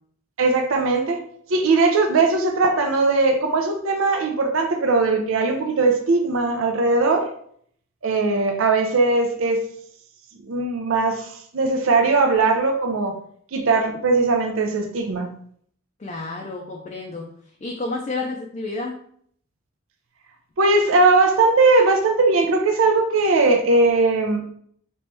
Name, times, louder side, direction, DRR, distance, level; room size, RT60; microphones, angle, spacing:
voice 1, 0.4-1.2 1.5-7.3 8.0-9.6 10.4-13.1 13.5-15.3 20.6-24.4, right 3 dB, 85° right, 5 dB, 0.5 m, -19 dB
voice 2, 16.0-17.3 17.6-18.9, left 3 dB, 35° left, 0 dB, 0.4 m, -30 dB
3.0 x 3.0 x 3.3 m, 0.62 s
head